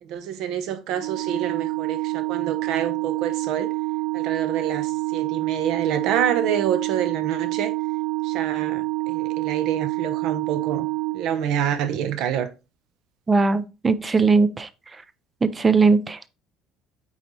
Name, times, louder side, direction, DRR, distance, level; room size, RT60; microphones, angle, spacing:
voice 1, 0.0-3.7 4.1-7.7 8.2-10.9 11.1-12.5, right 9 dB, 60° right, 0.9 m, -27 dB
Organ, 1.0-11.8, right 24 dB, 85° right, 0.3 m, -27 dB
voice 2, 13.3-14.7 15.4-16.3, right 4 dB, 15° right, 0.4 m, -19 dB
8.4 x 4.1 x 3.2 m
cardioid pair, 165°, 0 cm